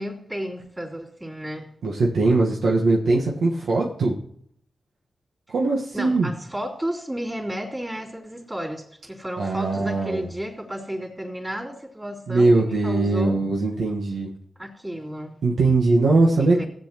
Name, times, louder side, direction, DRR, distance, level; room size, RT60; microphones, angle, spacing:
voice 1, 0.0-1.7 5.9-13.4 14.6-15.3 16.4-16.6, equal, 15° right, -1 dB, 3.4 m, -32 dB
voice 2, 1.8-4.2 5.5-6.3 9.4-10.2 12.3-14.3 15.4-16.6, right 3 dB, 85° right, -3 dB, 1.4 m, -21 dB
16.5 x 8.2 x 3.0 m, 0.67 s
cardioid pair, 65°, 0 cm